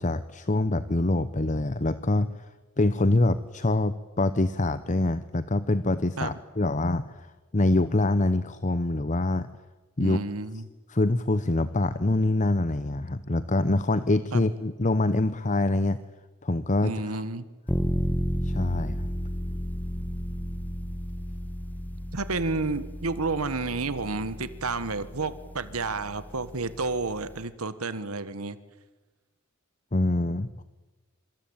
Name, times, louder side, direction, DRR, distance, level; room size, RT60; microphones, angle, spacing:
voice 1, 0.0-2.3 2.8-7.3 7.5-9.5 10.0-10.2 10.9-16.0 16.4-17.2 18.4-19.1 29.9-30.6, left 2 dB, 35° left, 13 dB, 0.9 m, -25 dB
voice 2, 10.0-10.6 14.3-14.4 16.8-17.5 22.1-28.6, right 3 dB, 80° right, 13 dB, 1.5 m, -30 dB
sound 1, 17.7-27.4, equal, 5° left, 1.3 m, -33 dB
26.0 x 25.0 x 8.9 m, 1.2 s
head